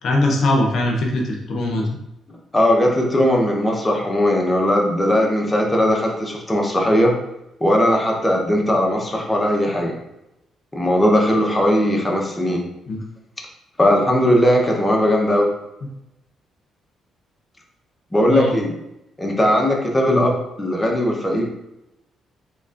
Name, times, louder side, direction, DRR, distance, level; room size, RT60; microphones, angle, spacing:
voice 1, 0.0-1.9 12.9-13.0 18.3-18.6 20.1-20.3, left 1 dB, 65° left, 1 dB, 0.7 m, -21 dB
voice 2, 2.5-7.1 7.6-9.9 10.7-12.6 13.8-15.5 18.1-18.7 19.2-20.3 20.6-21.5, left 1 dB, 15° left, 0 dB, 0.8 m, -18 dB
4.1 x 3.1 x 2.5 m, 0.88 s
cardioid pair, 90°, 0 cm